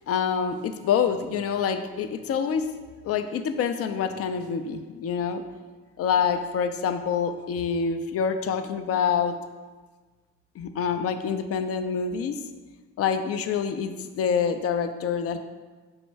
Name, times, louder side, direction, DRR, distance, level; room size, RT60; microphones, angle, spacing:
voice 1, 0.1-2.7 3.0-5.4 6.0-9.4 10.6-12.4 13.0-15.4, left 7 dB, 40° left, 8 dB, 0.4 m, -26 dB
4.4 x 2.1 x 4.4 m, 1.3 s
hypercardioid pair, 45°, 36 cm